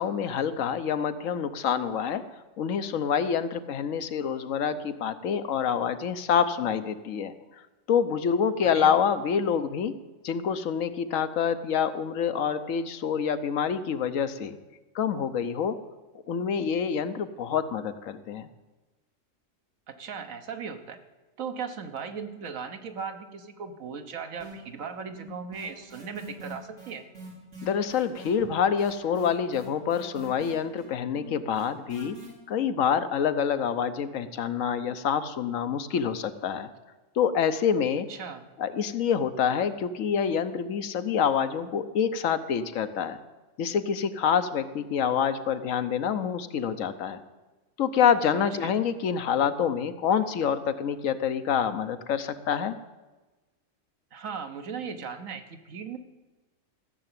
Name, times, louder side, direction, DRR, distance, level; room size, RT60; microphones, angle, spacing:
voice 1, 0.0-2.2 2.6-7.3 7.9-9.9 10.2-14.6 14.9-15.8 16.3-18.5 27.6-32.2 32.5-36.7 37.2-38.1 38.6-43.2 43.6-47.2 47.8-52.8, left 7 dB, 85° left, 11 dB, 1.2 m, -27 dB
voice 2, 8.6-9.0 19.9-21.0 21.4-27.0 38.1-38.4 48.3-48.8 54.1-56.0, right 6 dB, 85° right, 7 dB, 1.5 m, -37 dB
sound 1, 24.4-24.9 25.1-32.3, right 3 dB, 65° right, 4.7 m, -44 dB
14.0 x 6.8 x 8.9 m, 1.2 s
omnidirectional pair, 1.3 m